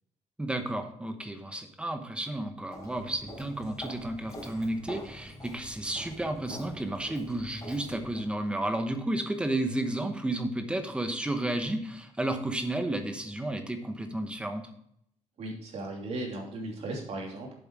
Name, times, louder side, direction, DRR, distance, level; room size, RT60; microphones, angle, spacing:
voice 1, 0.4-14.7, right 1 dB, 10° right, 6 dB, 1.0 m, -32 dB
Walk footsteps, 2.7-8.3, equal, 25° left, 3.8 m, -45 dB
voice 2, 15.4-17.5, right 2 dB, 55° right, 0 dB, 2.8 m, -36 dB
7.8 x 7.6 x 4.6 m, 0.72 s
cardioid pair, 160°, 13 cm